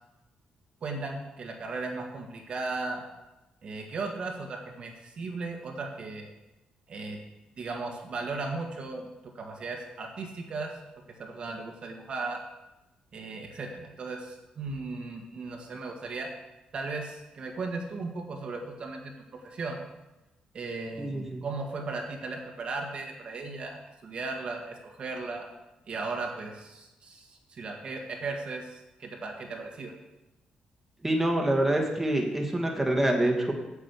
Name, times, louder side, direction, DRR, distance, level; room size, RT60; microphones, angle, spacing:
voice 1, 0.8-3.1 3.6-6.3 6.9-7.2 7.6-10.7 11.2-12.4 13.1-16.3 16.7-19.8 20.5-25.5 25.9-29.9, right 3 dB, 45° right, 2 dB, 1.5 m, -36 dB
voice 2, 21.0-21.4 31.0-33.5, right 1 dB, 10° right, 1 dB, 1.5 m, -26 dB
8.3 x 7.2 x 8.2 m, 0.99 s
cardioid pair, 155°, 3 cm